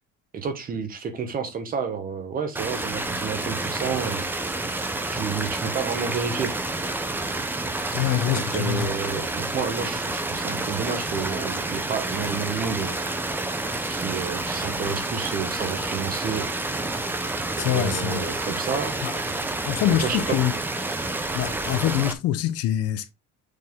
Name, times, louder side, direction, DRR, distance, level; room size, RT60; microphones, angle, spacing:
voice 1, 0.3-4.2 5.1-6.5 8.3-13.0 13.9-16.5 17.6-19.0 20.0-20.2, right 6 dB, 30° right, 1.1 m, -30 dB
sound 1, 2.6-22.1, right 2 dB, 5° right, 0.6 m, -29 dB
voice 2, 7.9-8.9 17.6-18.3 19.0-19.2 19.6-20.5 21.3-23.1, left 12 dB, 50° left, 0.7 m, -25 dB
6.6 x 4.2 x 3.6 m
cardioid pair, 175°, 30 cm